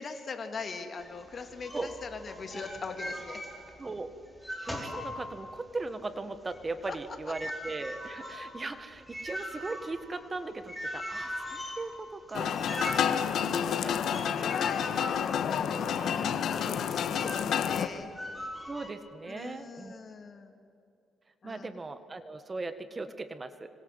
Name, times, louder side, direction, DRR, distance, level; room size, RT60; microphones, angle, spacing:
voice 1, 0.0-3.4 13.1-18.1 19.3-20.6 21.4-21.8, left 4 dB, 45° left, 6 dB, 3.2 m, -42 dB
sound 1, 1.0-4.0 4.3-5.7 6.1-17.6 18.1-18.9, equal, ahead, 4.6 m, -41 dB
voice 2, 3.8-4.1 4.6-12.5 13.8-14.5 18.7-20.0 21.4-23.7, right 3 dB, 25° right, 11 dB, 1.7 m, -38 dB
sound 2, 12.3-17.9, left 8 dB, 70° left, 1.5 m, -29 dB
25.5 x 25.5 x 8.1 m, 2.6 s
cardioid pair, 90°, 0 cm